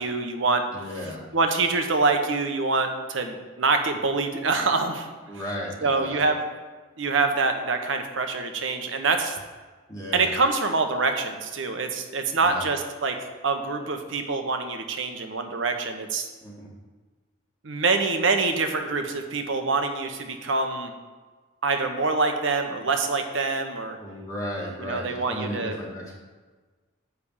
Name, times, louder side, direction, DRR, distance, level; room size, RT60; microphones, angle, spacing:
voice 1, 0.0-0.6 1.3-5.1 5.8-6.4 7.0-9.4 10.1-13.2 13.4-16.3 17.6-20.9 21.6-24.0 24.8-25.7, right 3 dB, 70° right, 6 dB, 0.9 m, -25 dB
voice 2, 0.7-1.2 5.3-6.4 9.9-10.3 12.4-12.6 16.4-16.7 24.0-26.2, left 1 dB, 15° left, -4 dB, 1.6 m, -35 dB
9.8 x 3.4 x 7.1 m, 1.4 s
head